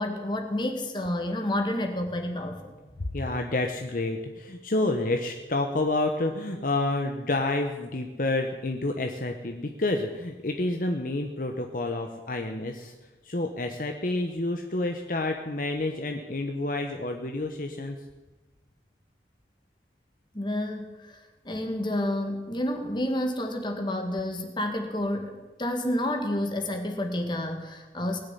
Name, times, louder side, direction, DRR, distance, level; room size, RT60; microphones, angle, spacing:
voice 1, 0.0-2.6 20.3-21.2 21.5-25.3 25.6-28.2, left 1 dB, 25° left, 4 dB, 1.9 m, -29 dB
voice 2, 3.0-12.9 13.2-18.0, left 2 dB, 50° left, 4 dB, 1.0 m, -29 dB
19.5 x 6.7 x 9.9 m, 1.2 s
head